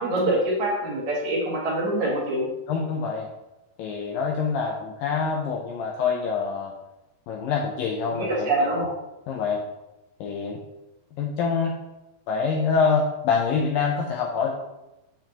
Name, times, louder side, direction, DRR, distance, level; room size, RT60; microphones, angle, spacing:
voice 1, 0.0-2.5 8.1-8.9, right 1 dB, 55° right, -3 dB, 2.6 m, -25 dB
voice 2, 2.7-3.3 3.8-6.7 7.3-8.5 9.3-9.6 10.2-10.6 11.2-11.7 12.3-14.5, left 5 dB, 80° left, 0 dB, 2.0 m, -25 dB
7.7 x 7.1 x 2.9 m, 0.98 s
omnidirectional pair, 4.8 m